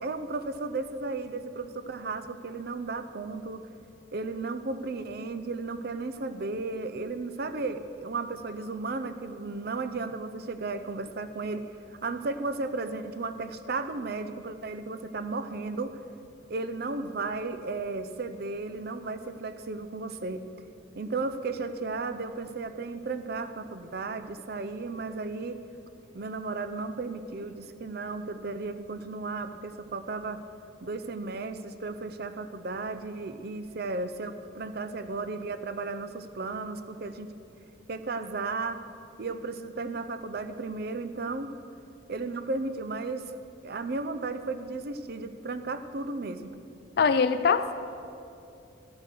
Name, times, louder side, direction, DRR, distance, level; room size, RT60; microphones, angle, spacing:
voice 1, 0.0-3.6 4.1-11.6 11.9-15.9 16.5-20.4 20.9-25.6 26.1-30.4 30.8-37.3 37.9-38.8 39.2-41.5 42.1-43.4 43.6-46.5, right 3 dB, 50° right, 11 dB, 0.6 m, -34 dB
voice 2, 47.0-47.7, left 5 dB, 55° left, 11 dB, 0.4 m, -22 dB
12.5 x 8.0 x 6.6 m, 2.6 s
head